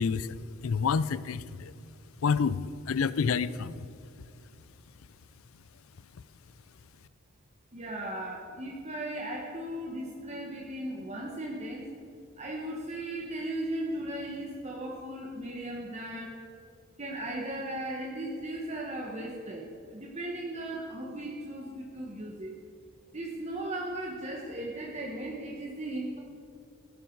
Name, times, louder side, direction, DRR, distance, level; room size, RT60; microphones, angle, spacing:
voice 1, 0.0-1.7 2.2-3.9, left 5 dB, 75° left, 17 dB, 0.5 m, -29 dB
voice 2, 7.7-11.9 12.4-16.4 17.0-22.5 23.1-26.2, right 1 dB, 35° right, -1 dB, 1.3 m, -37 dB
16.5 x 12.0 x 4.6 m, 2.6 s
head